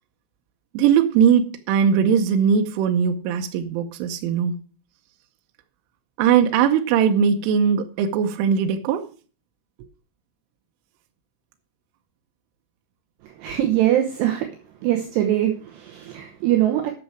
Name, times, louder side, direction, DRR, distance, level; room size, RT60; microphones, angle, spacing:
voice 1, 0.7-4.6 6.2-9.1, right 7 dB, 90° right, 5 dB, 3.3 m, -20 dB
voice 2, 13.2-14.5 14.8-16.9, right 12 dB, 75° right, 3 dB, 2.9 m, -22 dB
11.5 x 6.4 x 5.9 m, 0.38 s
omnidirectional pair, 5.5 m